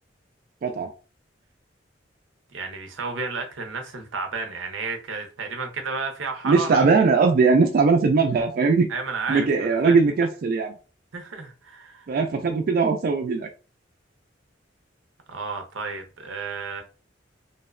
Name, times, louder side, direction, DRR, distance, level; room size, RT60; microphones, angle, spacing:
voice 1, 2.5-6.8 8.9-10.0 11.1-12.1 15.3-16.8, right 4 dB, 90° right, 0.6 m, -32 dB
voice 2, 6.4-8.9 9.3-10.7 12.1-13.5, right 4 dB, 50° right, 0.3 m, -20 dB
2.6 x 2.1 x 2.4 m
head